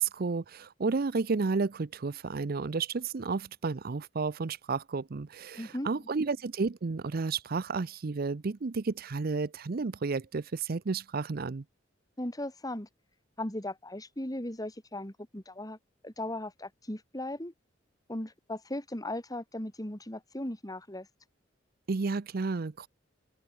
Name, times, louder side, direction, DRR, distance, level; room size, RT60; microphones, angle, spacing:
voice 1, 0.0-11.6 21.9-22.9, right 4 dB, 50° right, 0.6 m, -32 dB
voice 2, 5.5-5.9 12.2-12.9 13.4-15.8 16.0-17.5 18.1-21.1, left 1 dB, 20° left, 3.0 m, -37 dB
head